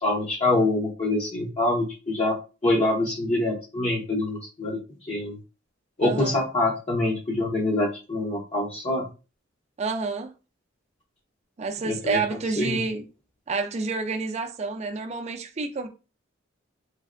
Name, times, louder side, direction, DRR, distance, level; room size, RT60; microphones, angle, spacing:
voice 1, 0.0-2.3 2.6-4.8 5.1-5.4 6.0-9.1 11.8-12.2 12.6-12.8, left 2 dB, 35° left, 0.6 m, -25 dB
voice 2, 6.0-6.4 9.8-10.3 11.6-13.1 13.5-15.9, right 4 dB, 35° right, 0.4 m, -29 dB
3.2 x 2.5 x 2.5 m
head